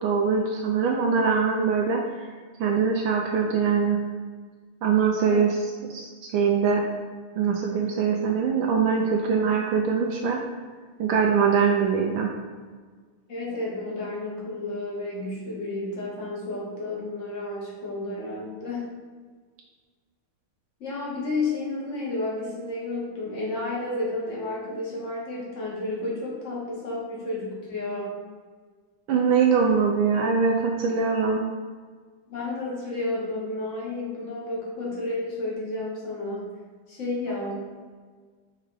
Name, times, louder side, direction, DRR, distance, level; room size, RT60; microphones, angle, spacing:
voice 1, 0.0-2.0 2.6-4.0 4.8-5.5 5.9-6.8 7.4-10.4 11.0-12.3 29.1-31.4, right 6 dB, 80° right, 0 dB, 1.4 m, -22 dB
voice 2, 13.3-18.9 20.8-28.2 32.3-36.4 36.9-37.7, left 2 dB, 35° left, -5 dB, 1.8 m, -31 dB
5.7 x 3.6 x 4.9 m, 1.5 s
omnidirectional pair, 2.3 m